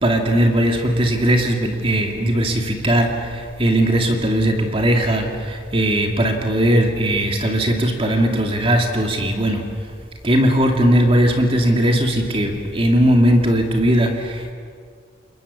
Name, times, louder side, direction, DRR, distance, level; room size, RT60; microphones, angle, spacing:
voice 1, 0.0-3.1 3.6-9.6 10.2-14.5, right 1 dB, 30° right, 3 dB, 2.4 m, -18 dB
29.0 x 22.0 x 7.1 m, 2.1 s
head